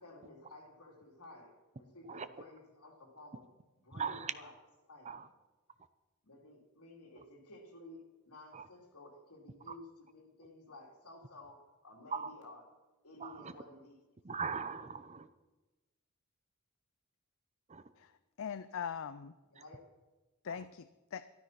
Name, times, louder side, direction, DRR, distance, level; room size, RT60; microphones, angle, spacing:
voice 1, 0.0-3.5 3.8-4.5 4.8-5.2 6.2-12.6 13.0-14.0 19.5-19.8, left 2 dB, 80° left, 1 dB, 3.0 m, -54 dB
voice 2, 3.9-4.3 5.0-5.3 8.5-8.7 12.1-12.3 13.2-13.5 14.2-15.3 17.7-17.8 20.5-20.6, right 5 dB, 30° right, 12 dB, 0.6 m, -39 dB
voice 3, 18.0-19.3 20.4-21.3, left 7 dB, 60° left, 13 dB, 0.5 m, -42 dB
13.0 x 12.5 x 5.9 m, 1.1 s
head